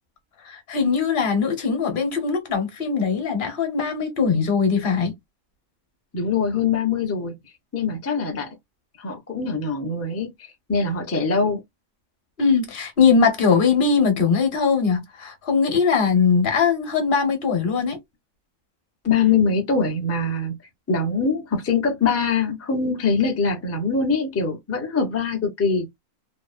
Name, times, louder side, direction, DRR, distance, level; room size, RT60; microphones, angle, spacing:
voice 1, 0.4-5.1 12.4-18.0, left 5 dB, 45° left, 1.0 m, -21 dB
voice 2, 6.1-7.3 7.7-8.6 9.0-11.6 19.0-20.6 20.9-25.9, left 4 dB, 20° left, 0.3 m, -23 dB
2.8 x 2.0 x 2.4 m
omnidirectional pair, 1.4 m